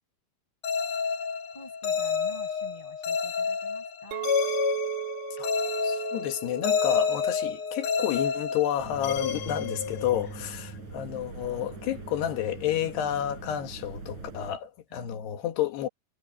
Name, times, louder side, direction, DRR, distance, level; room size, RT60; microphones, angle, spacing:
Creepy Bells, 0.6-10.4, left 6 dB, 50° left, 2.5 m, -29 dB
voice 1, 1.5-4.3 10.2-10.3 14.9-15.3, left 1 dB, 5° left, 7.6 m, -48 dB
Chink clink, 4.1-9.3, right 16 dB, 85° right, 2.0 m, -36 dB
voice 2, 5.8-15.9, left 11 dB, 90° left, 3.7 m, -30 dB
sound 1, 8.8-14.6, right 3 dB, 45° right, 7.4 m, -41 dB
omnidirectional pair, 4.6 m